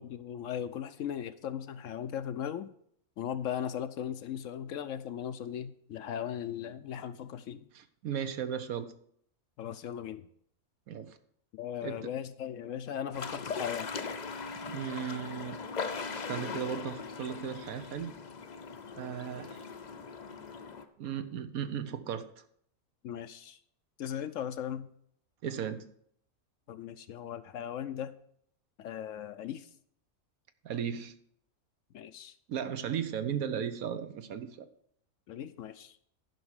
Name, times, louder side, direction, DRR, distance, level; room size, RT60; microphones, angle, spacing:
voice 1, 0.0-2.7 3.2-7.7 9.6-10.2 11.5-13.9 23.0-23.6 24.0-24.9 26.7-28.1 28.8-29.7 31.9-32.3 35.3-36.0, left 9 dB, 65° left, 12 dB, 0.9 m, -38 dB
voice 2, 7.7-8.9 10.9-11.2 11.8-12.1 14.6-15.6 16.3-18.1 19.0-19.6 21.0-22.4 25.4-25.9 30.6-31.1 32.5-34.7, right 8 dB, 75° right, 10 dB, 1.3 m, -36 dB
sound 1, 13.1-20.8, left 5 dB, 40° left, 0.6 m, -39 dB
10.5 x 5.7 x 6.4 m, 0.65 s
omnidirectional pair, 1.5 m